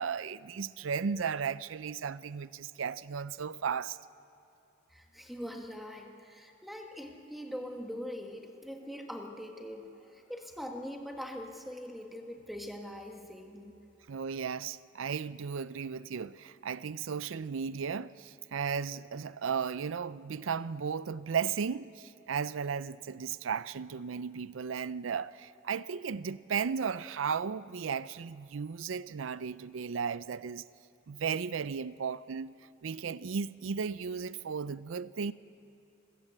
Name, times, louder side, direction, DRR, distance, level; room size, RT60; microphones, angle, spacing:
voice 1, 0.0-4.0 14.1-30.6 31.1-32.5 32.8-35.3, right 6 dB, 80° right, 0.5 m, -35 dB
voice 2, 4.9-13.8, equal, ahead, 1.5 m, -42 dB
27.0 x 16.5 x 7.9 m
head